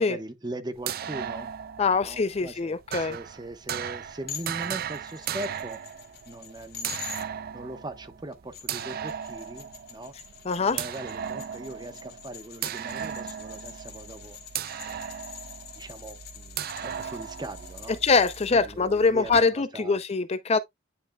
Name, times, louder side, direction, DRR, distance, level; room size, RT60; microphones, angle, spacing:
voice 1, 0.0-1.5 2.0-5.8 6.3-6.9 7.5-10.1 10.6-14.4 14.8-15.0 15.8-18.0 18.5-20.0, right 1 dB, 20° right, 1.1 m, -40 dB
sound 1, 0.8-19.4, right 9 dB, 50° right, 0.4 m, -37 dB
voice 2, 1.8-3.2 10.5-10.8 18.0-20.6, left 4 dB, 30° left, 0.5 m, -23 dB
sound 2, 4.3-7.2 8.3-18.5, left 7 dB, 55° left, 1.8 m, -45 dB
9.9 x 5.6 x 2.3 m
head